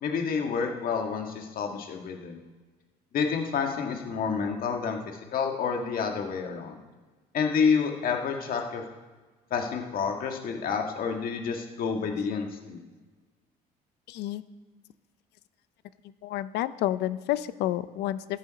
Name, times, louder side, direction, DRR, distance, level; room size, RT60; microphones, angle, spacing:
voice 1, 0.0-2.4 3.1-5.0 5.3-6.7 7.3-8.8 9.5-12.8, left 6 dB, 60° left, 3 dB, 1.6 m, -29 dB
voice 2, 14.1-14.4 16.2-18.4, left 13 dB, 80° left, 15 dB, 0.6 m, -30 dB
14.0 x 10.5 x 4.1 m, 1.3 s
cardioid pair, 110°, 17 cm